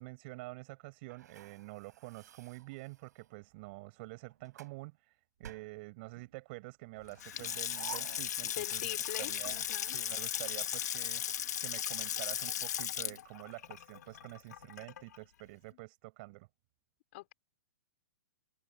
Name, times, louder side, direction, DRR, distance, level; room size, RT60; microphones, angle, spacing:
voice 1, 0.0-9.6 9.9-16.5, right 24 dB, 40° right, 8.0 m, -48 dB
sound 1, 1.1-3.4 4.1-4.8 5.4-6.3 7.1-9.2 9.5-9.6 10.0-12.1, right 8 dB, 75° right, 7.0 m, -54 dB
Water tap faucet / Sink (filling or washing) / Splash splatter, 7.1-15.2, left 10 dB, 70° left, 2.0 m, -37 dB
voice 2, 8.4-10.0 15.7-15.8 17.1-17.3, left 19 dB, 45° left, 5.7 m, -43 dB
hypercardioid pair, 150°, 9 cm